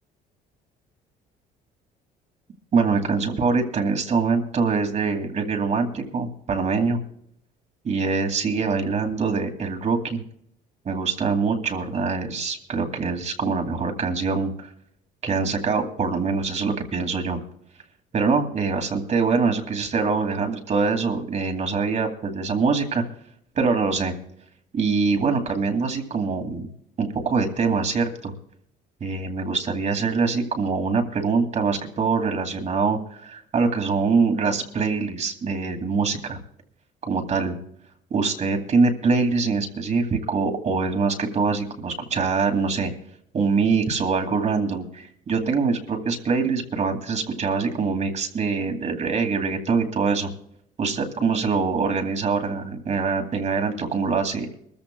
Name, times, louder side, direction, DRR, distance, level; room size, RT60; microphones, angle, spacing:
voice 1, 2.7-7.0 7.8-10.2 10.8-14.5 15.2-17.4 18.1-23.0 23.5-24.1 24.7-26.7 27.0-28.3 29.0-36.4 37.0-37.6 38.1-42.9 43.3-50.3 50.8-54.5, right 4 dB, 40° right, 4 dB, 2.4 m, -24 dB
23.0 x 14.5 x 2.3 m, 0.72 s
cardioid pair, 110°, 17 cm